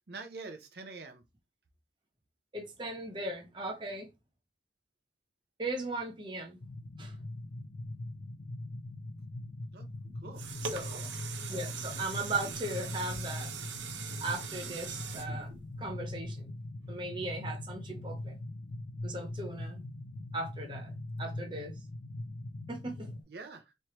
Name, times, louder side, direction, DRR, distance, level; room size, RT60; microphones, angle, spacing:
voice 1, 0.1-1.2 9.7-9.9 10.1-10.4 10.8-11.0 23.3-23.7, right 3 dB, 60° right, 0.7 m, -46 dB
voice 2, 2.5-4.1 5.6-6.6 7.0-7.1 10.6-11.1 11.5-13.5 14.2-15.5 15.8-16.5 16.9-18.4 19.0-19.8 20.3-21.7 22.7-23.1, right 2 dB, 25° right, 0.8 m, -38 dB
sound 1, 6.6-23.2, left 1 dB, 50° left, 0.4 m, -41 dB
sound 2, 10.1-16.4 16.9-17.0, right 6 dB, 90° right, 0.8 m, -42 dB
4.4 x 3.2 x 3.0 m
head